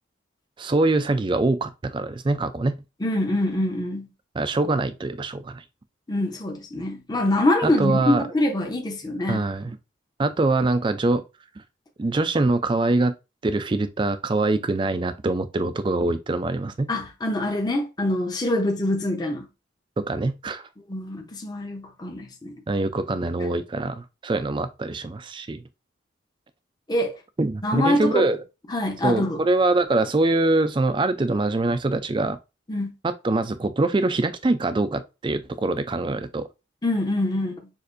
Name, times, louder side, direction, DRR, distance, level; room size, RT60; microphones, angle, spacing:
voice 1, 0.6-2.8 4.3-5.6 7.6-8.2 9.3-9.8 10.2-11.2 12.0-13.2 13.4-16.9 20.0-20.7 22.7-25.6 27.4-28.4 29.0-32.4 33.0-36.5, right 2 dB, 25° right, 0.3 m, -24 dB
voice 2, 3.0-4.1 6.1-9.5 16.9-19.5 20.9-22.5 26.9-27.1 27.6-28.3 28.7-29.4 32.7-32.9 36.8-37.7, left 1 dB, 20° left, 0.7 m, -25 dB
6.5 x 2.6 x 2.5 m
head